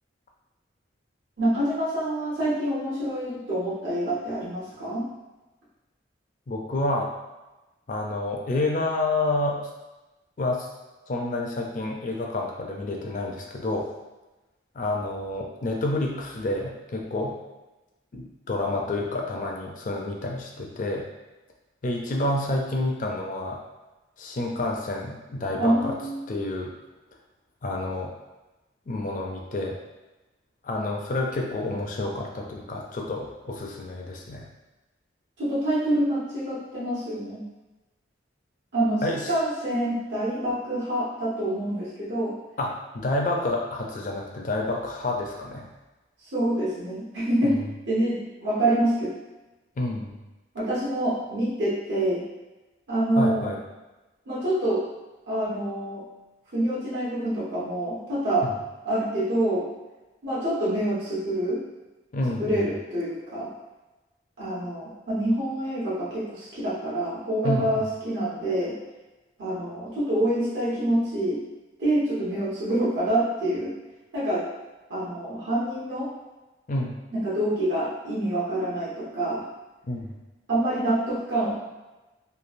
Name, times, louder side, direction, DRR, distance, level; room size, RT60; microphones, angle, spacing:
voice 1, 1.4-5.1 25.6-26.2 35.4-37.4 38.7-42.4 46.3-47.6 47.9-49.1 50.5-52.2 52.9-53.5 54.3-54.8 55.3-56.0 56.5-58.5 58.8-59.7 60.2-61.6 62.4-63.5 64.4-68.7 69.4-71.4 71.8-73.7 74.1-74.5 74.9-76.1 77.1-79.5 80.5-81.5, right 1 dB, 70° right, -9 dB, 1.0 m, -26 dB
voice 2, 6.5-7.1 7.9-9.6 10.4-10.7 11.1-13.9 14.7-17.4 18.1-21.1 21.8-23.6 24.2-26.0 26.3-26.7 27.6-28.1 28.9-29.8 30.6-34.5 39.0-39.3 42.6-45.7 47.4-47.7 49.8-50.2 53.2-53.6 58.4-58.5 62.1-62.7 67.4-67.9 76.7-77.0 79.9-80.1, left 2 dB, 45° left, 0 dB, 0.4 m, -29 dB
3.1 x 2.3 x 2.5 m, 1.1 s
head